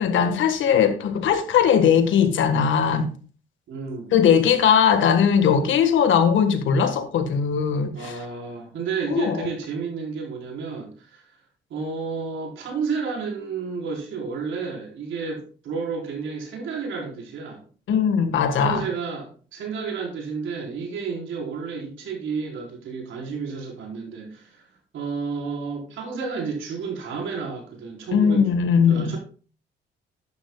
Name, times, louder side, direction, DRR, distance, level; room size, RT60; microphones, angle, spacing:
voice 1, 0.0-3.1 4.1-8.1 9.1-9.5 17.9-18.8 28.1-29.1, left 7 dB, 75° left, 1.5 m, -19 dB
voice 2, 3.7-4.1 7.9-11.2 11.7-17.6 18.5-24.6 24.9-28.5 28.9-29.2, right 5 dB, 75° right, 4.2 m, -31 dB
11.5 x 10.5 x 2.3 m
cardioid pair, 90°, 20 cm